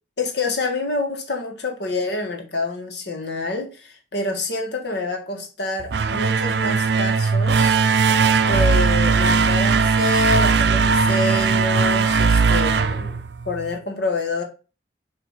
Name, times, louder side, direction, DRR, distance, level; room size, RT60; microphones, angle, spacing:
voice 1, 0.2-7.8 8.5-14.4, left 3 dB, 60° left, 1.7 m, -27 dB
sound 1, 5.8-13.8, right 5 dB, 60° right, 0.5 m, -19 dB
7.7 x 3.1 x 5.6 m
head